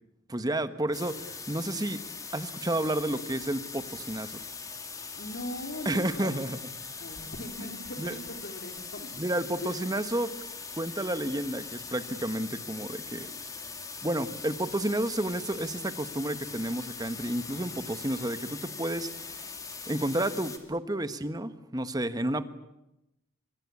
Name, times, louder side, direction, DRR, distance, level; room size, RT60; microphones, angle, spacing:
voice 1, 0.3-2.0 2.3-4.4 5.8-6.6 8.0-8.1 9.1-10.3 10.8-13.3 14.0-19.4 19.8-22.5, right 1 dB, 20° right, 11 dB, 1.2 m, -31 dB
sound 1, 0.9-20.6, left 5 dB, 15° left, 2.4 m, -41 dB
voice 2, 5.2-6.4 7.0-9.1 9.6-10.0, left 1 dB, 55° left, 5 dB, 3.6 m, -40 dB
25.5 x 22.5 x 8.5 m, 0.89 s
head